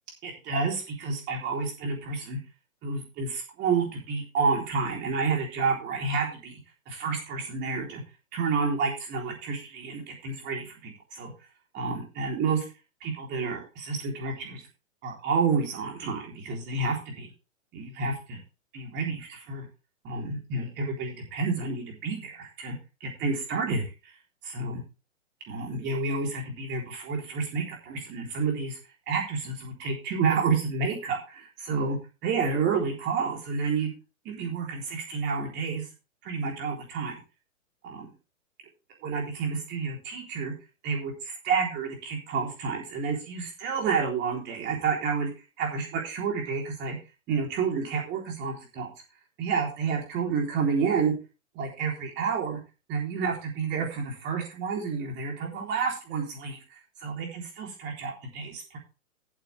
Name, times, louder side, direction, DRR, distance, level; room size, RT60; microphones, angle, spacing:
voice 1, 0.2-2.4 2.8-6.6 6.9-8.0 8.3-11.3 11.7-12.7 13.0-14.6 15.0-17.3 17.7-18.4 18.7-19.7 20.0-22.7 23.0-23.8 24.4-24.8 25.5-28.8 29.1-32.0 32.2-33.9 34.3-35.9 36.2-37.1 37.8-38.1 39.0-40.5 40.8-45.3 45.6-47.0 47.3-48.9 49.4-51.1 51.6-52.6 52.9-58.8, right 5 dB, 25° right, 0 dB, 3.7 m, -30 dB
14.0 x 8.4 x 3.5 m, 0.31 s
hypercardioid pair, 145°, 41 cm